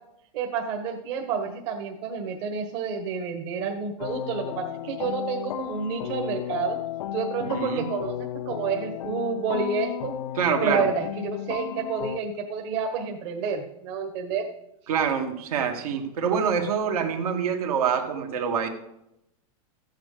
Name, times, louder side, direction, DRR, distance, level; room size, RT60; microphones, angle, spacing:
voice 1, 0.3-6.8 7.1-8.2 8.5-10.1 10.6-14.5, right 5 dB, 45° right, 3 dB, 1.6 m, -29 dB
sound 1, 4.0-12.2, left 12 dB, 70° left, 0.5 m, -34 dB
voice 2, 7.4-7.9 10.4-10.9 14.9-18.7, right 7 dB, 75° right, 3 dB, 2.3 m, -26 dB
14.0 x 9.3 x 5.1 m, 0.82 s
supercardioid pair, 155°, 19 cm